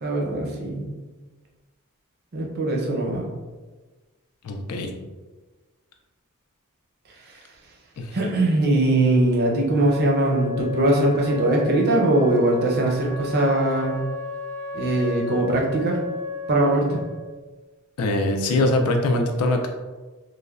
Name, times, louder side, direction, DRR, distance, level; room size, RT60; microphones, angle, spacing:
voice 1, 0.0-0.9 2.3-3.3 7.2-7.4 8.1-14.0 14.7-16.0 16.5-17.0, right 1 dB, 50° right, -1 dB, 0.5 m, -21 dB
voice 2, 4.4-4.9 8.0-8.2 18.0-19.7, left 2 dB, 90° left, 3 dB, 0.3 m, -22 dB
Wind instrument woodwind instrument, 9.7-17.4, left 3 dB, 5° left, 0.4 m, -33 dB
3.1 x 2.1 x 2.3 m, 1.3 s
head